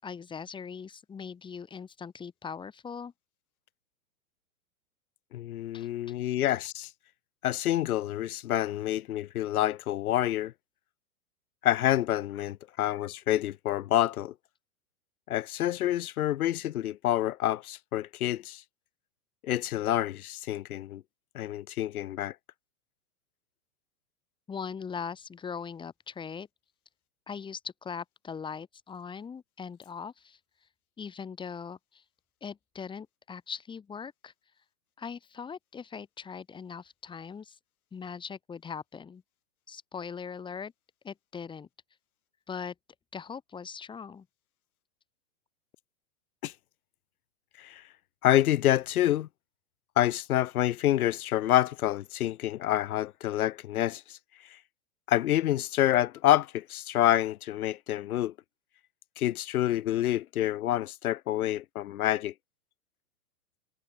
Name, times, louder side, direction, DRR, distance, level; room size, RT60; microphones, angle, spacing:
voice 1, 0.0-3.1 5.7-5.9 24.5-26.5 27.3-30.4 31.0-32.0 32.4-34.3 35.0-37.6 37.9-39.2 39.7-40.7 41.0-41.7 42.5-42.7 43.1-44.3, left 6 dB, 10° left, 6.6 m, -40 dB
voice 2, 5.3-6.9 7.4-10.5 11.6-14.3 15.3-18.6 19.4-21.0 21.3-22.3 46.4-46.5 47.6-47.8 48.2-49.3 50.0-54.2 55.1-58.3 59.2-62.3, left 13 dB, 70° left, 1.4 m, -27 dB
supercardioid pair, 165°, 45 cm